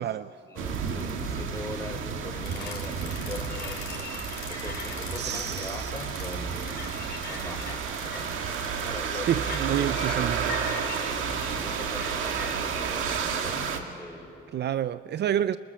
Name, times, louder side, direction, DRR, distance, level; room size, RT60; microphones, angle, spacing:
voice 1, 0.4-4.2 4.4-6.9 7.3-10.2 11.0-14.3, left 2 dB, 15° left, 0 dB, 5.3 m, -41 dB
sound 1, 0.6-13.8, right 6 dB, 85° right, 2.0 m, -31 dB
sound 2, 2.4-12.5, left 6 dB, 55° left, 4.1 m, -41 dB
voice 2, 5.2-5.9 8.9-10.6 14.5-15.6, right 10 dB, 60° right, 15 dB, 0.5 m, -29 dB
25.5 x 21.5 x 7.1 m, 2.5 s
cardioid pair, 90°, 20 cm